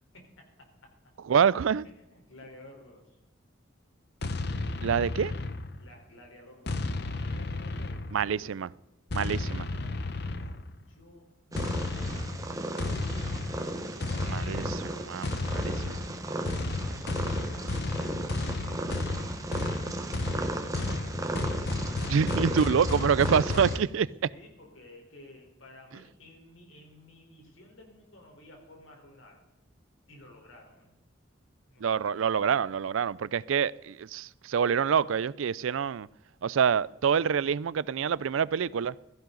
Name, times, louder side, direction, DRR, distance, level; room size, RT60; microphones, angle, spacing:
voice 1, 0.1-0.9 1.8-3.1 5.7-8.7 9.4-10.0 10.3-13.6 22.1-29.5 30.1-30.9 31.7-32.2, left 1 dB, 80° left, 4.1 m, -55 dB
voice 2, 1.3-1.8 4.8-5.3 8.1-8.7 9.1-9.7 14.2-16.0 22.1-24.1 31.8-36.1 36.4-38.9, right 7 dB, 80° right, 0.4 m, -26 dB
sound 1, 4.2-6.0 6.7-8.4 9.1-10.7 11.5-23.8, left 2 dB, 55° left, 0.8 m, -33 dB
Purr, 11.5-23.8, right 1 dB, 15° right, 1.1 m, -36 dB
16.5 x 14.5 x 3.9 m
head